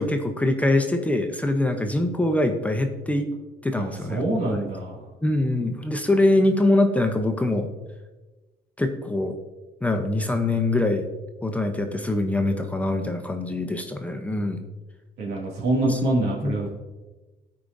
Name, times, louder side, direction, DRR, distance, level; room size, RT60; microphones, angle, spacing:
voice 1, 0.0-3.3 3.6-4.6 5.2-7.7 8.8-9.3 9.8-11.1 11.4-14.6 15.9-16.0 16.4-16.5, left 2 dB, 10° left, 5 dB, 0.6 m, -23 dB
voice 2, 3.7-5.0 15.2-16.7, right 2 dB, 80° right, -3 dB, 2.2 m, -25 dB
12.5 x 4.8 x 2.6 m, 1.2 s
cardioid pair, 110°, 17 cm